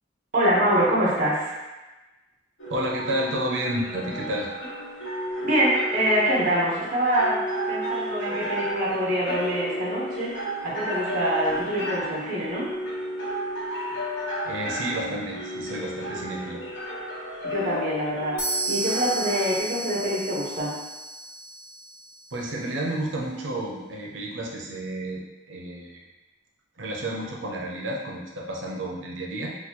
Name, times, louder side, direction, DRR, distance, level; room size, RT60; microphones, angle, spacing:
voice 1, 0.3-1.6 5.4-7.4 7.7-10.4 10.6-12.7 17.4-20.8, right 1 dB, 45° right, -6 dB, 1.1 m, -25 dB
sound 1, 2.6-19.6, equal, 90° left, 1.2 m, -33 dB
voice 2, 2.7-4.5 14.5-16.6 22.3-26.0 26.8-29.6, right 1 dB, 85° right, -2 dB, 0.7 m, -31 dB
sound 2, 18.4-22.1, right 2 dB, 40° left, 0.8 m, -32 dB
3.9 x 2.3 x 2.9 m, 1.1 s
head